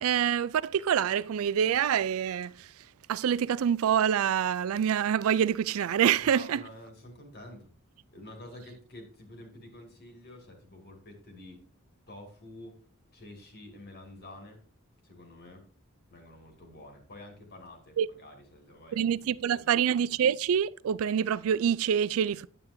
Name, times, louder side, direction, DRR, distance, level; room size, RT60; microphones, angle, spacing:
voice 1, 0.0-2.7 3.1-6.6 18.0-18.1 18.9-22.5, right 8 dB, 70° right, 0.3 m, -26 dB
voice 2, 6.2-7.7 8.1-11.7 12.1-12.8 13.1-14.6 15.0-15.7 16.1-19.8, left 1 dB, 45° left, 2.2 m, -49 dB
9.0 x 8.7 x 2.7 m
head